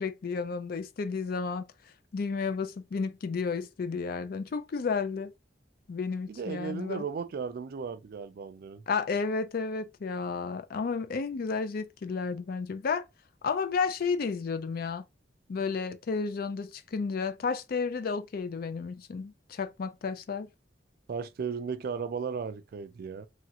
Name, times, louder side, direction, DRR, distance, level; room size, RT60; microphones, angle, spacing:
voice 1, 0.0-1.6 2.1-5.3 5.9-7.0 8.9-13.0 13.4-15.0 15.5-20.5, left 5 dB, 55° left, 0.4 m, -32 dB
voice 2, 6.3-8.8 21.1-23.3, right 6 dB, 55° right, 0.3 m, -35 dB
3.2 x 2.4 x 2.8 m
head